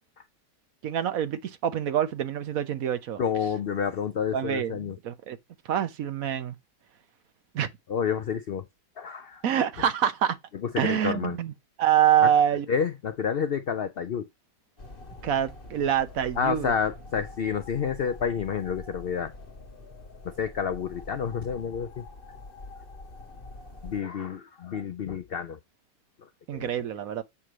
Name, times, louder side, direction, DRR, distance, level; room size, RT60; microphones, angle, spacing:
voice 1, 0.8-3.2 4.3-5.4 5.7-6.5 7.5-7.7 9.4-10.4 10.8-11.5 11.8-12.6 15.2-16.7 26.5-27.2, right 9 dB, 60° right, 1.1 m, -25 dB
voice 2, 3.2-5.0 7.9-8.7 9.0-9.4 9.8-9.9 10.5-11.4 12.2-12.3 12.7-14.3 16.4-19.3 20.2-22.1 23.8-25.6 26.2-26.7, left 7 dB, 90° left, 0.5 m, -29 dB
sound 1, 14.8-24.0, left 2 dB, 35° left, 1.7 m, -45 dB
8.5 x 3.1 x 6.2 m
omnidirectional pair, 1.8 m